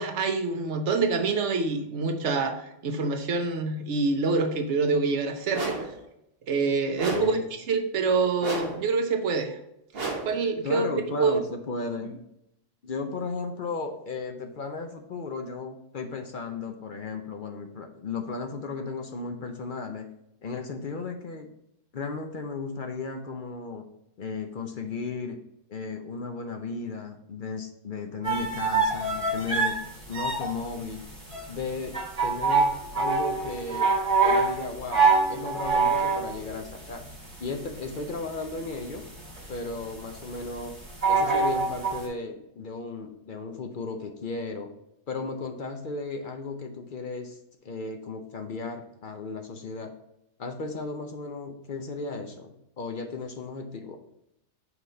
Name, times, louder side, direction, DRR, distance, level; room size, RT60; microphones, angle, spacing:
voice 1, 0.0-5.8 6.5-7.4 7.7-9.6 10.3-10.9 11.2-11.4, right 4 dB, 65° right, 6 dB, 1.0 m, -26 dB
sound 1, 5.5-6.0 7.0-7.5 8.4-8.9 9.9-10.4, right 3 dB, 50° right, 1.3 m, -32 dB
voice 2, 7.1-7.4 10.6-12.2 12.8-20.1 20.4-21.5 21.9-23.8 24.2-25.4 25.7-29.8 30.1-31.0 31.5-31.9 32.2-33.9 34.2-37.0 37.4-39.0 39.5-40.7 41.1-44.7 45.1-47.4 47.6-49.9 50.4-54.0, left 4 dB, 50° left, 5 dB, 0.7 m, -35 dB
sound 2, 28.2-42.0, right 4 dB, 30° right, 2.1 m, -25 dB
5.8 x 3.9 x 4.3 m, 0.80 s
omnidirectional pair, 1.3 m